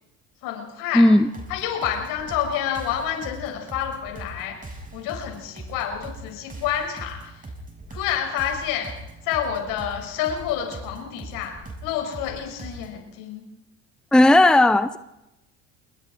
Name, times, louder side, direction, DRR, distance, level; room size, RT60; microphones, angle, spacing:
voice 1, 0.4-1.1 1.5-4.6 4.9-7.3 7.9-8.9 9.2-13.4, left 9 dB, 65° left, 3 dB, 6.1 m, -28 dB
voice 2, 0.9-1.3 14.1-15.0, left 1 dB, ahead, 13 dB, 0.9 m, -15 dB
sound 1, 1.3-13.0, right 2 dB, 20° right, 7.4 m, -41 dB
27.0 x 21.5 x 4.6 m, 0.92 s
hypercardioid pair, 75°, 36 cm